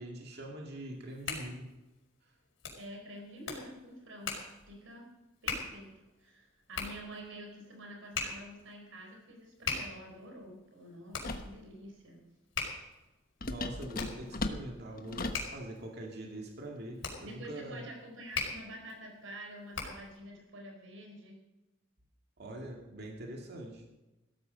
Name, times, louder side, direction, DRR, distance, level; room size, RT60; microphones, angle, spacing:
voice 1, 0.0-1.7 13.4-17.8 22.4-23.8, right 1 dB, 55° right, 0 dB, 2.4 m, -43 dB
Hands, 0.8-20.2, left 4 dB, 75° left, 5.0 m, -42 dB
voice 2, 2.7-5.1 5.4-5.9 6.2-12.2 17.2-21.4, equal, 80° right, 2 dB, 4.6 m, -48 dB
sound 1, 11.2-11.6 13.4-15.5, left 2 dB, 45° left, 1.2 m, -37 dB
16.5 x 13.5 x 5.3 m, 1.0 s
head